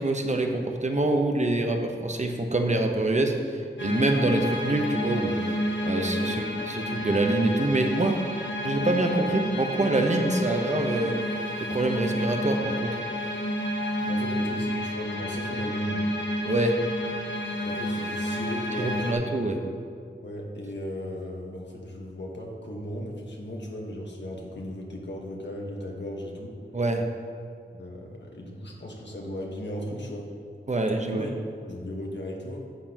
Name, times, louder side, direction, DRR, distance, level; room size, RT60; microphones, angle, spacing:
voice 1, 0.0-3.3 3.8-5.5 5.8-8.2 8.6-11.2 11.6-13.0 16.4-16.8 18.8-19.6 26.7-27.1 30.7-31.2, right 2 dB, 40° right, 3 dB, 1.0 m, -25 dB
sound 1, 3.8-19.1, equal, 90° left, 1.0 m, -30 dB
voice 2, 14.1-16.1 17.6-19.2 20.2-26.6 27.7-30.3 31.0-31.3 31.6-32.6, left 1 dB, 70° left, -1 dB, 1.4 m, -36 dB
11.5 x 7.7 x 3.0 m, 2.3 s
cardioid pair, 45°, 19 cm